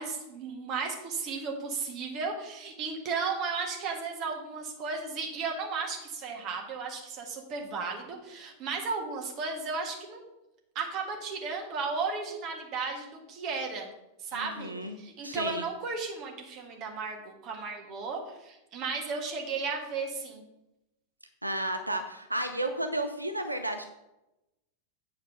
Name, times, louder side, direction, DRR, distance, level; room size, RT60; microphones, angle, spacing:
voice 1, 0.0-10.2 10.7-13.9 14.2-14.7 15.0-20.4, right 4 dB, 40° right, 1 dB, 1.7 m, -34 dB
voice 2, 14.3-15.0 15.2-15.6 21.4-23.9, right 1 dB, 85° right, 6 dB, 0.6 m, -32 dB
8.8 x 4.7 x 5.9 m, 0.92 s
figure-of-eight pair, 90°, 0 cm